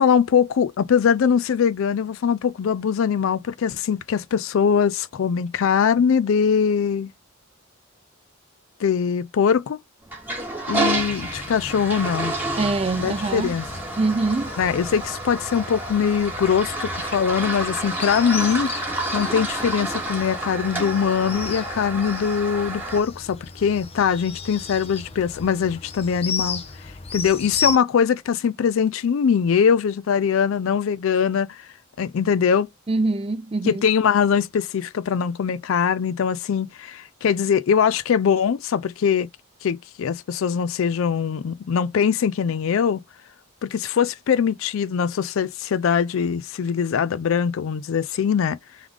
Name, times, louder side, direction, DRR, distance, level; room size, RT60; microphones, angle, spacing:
voice 1, 0.0-7.1 8.8-9.8 10.7-12.4 13.0-13.7 14.6-26.6 27.1-31.7 32.0-32.7 33.7-39.3 39.6-43.0 43.6-48.6, left 7 dB, 70° left, 0.4 m, -22 dB
Toilet flush, 10.1-23.0, right 2 dB, 10° right, 1.6 m, -29 dB
sound 1, 10.9-27.8, left 4 dB, 30° left, 0.7 m, -35 dB
voice 2, 12.5-13.6 14.0-14.5 32.9-33.8, right 3 dB, 25° right, 0.5 m, -24 dB
3.6 x 3.2 x 3.6 m
head